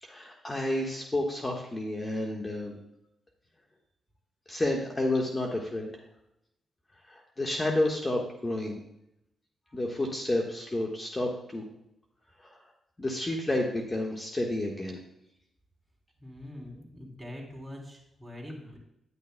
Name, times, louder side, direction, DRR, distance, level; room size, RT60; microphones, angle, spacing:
voice 1, 0.0-2.8 4.5-5.9 7.1-8.8 9.7-11.6 12.5-12.6 13.0-15.0, left 1 dB, 25° left, 0 dB, 1.3 m, -30 dB
voice 2, 16.2-18.8, left 1 dB, 15° right, -1 dB, 3.1 m, -43 dB
10.0 x 9.7 x 2.2 m, 0.82 s
cardioid pair, 60°, 0 cm